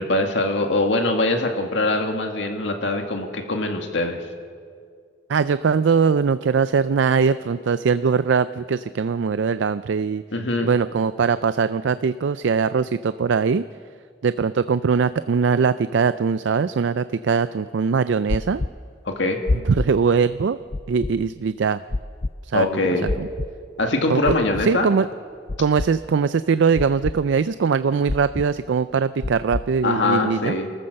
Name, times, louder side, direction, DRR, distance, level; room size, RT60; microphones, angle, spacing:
voice 1, 0.0-4.2 10.3-10.7 19.1-19.4 22.5-23.2 23.8-24.9 29.8-30.7, left 2 dB, 75° left, 4 dB, 2.0 m, -23 dB
voice 2, 5.3-10.2 10.6-13.7 14.2-18.6 19.6-20.6 20.9-21.8 22.4-23.3 24.1-25.1 25.6-30.6, right 5 dB, 80° right, 13 dB, 0.4 m, -21 dB
sound 1, 18.3-18.7 19.5-19.9 20.7-21.1 21.9-22.3 23.1-23.5 24.3-24.7 25.5-25.9 26.8-27.2 28.1-28.5 29.2-29.6, left 2 dB, 30° left, 0.4 m, -25 dB
28.5 x 14.5 x 6.5 m, 2.1 s
head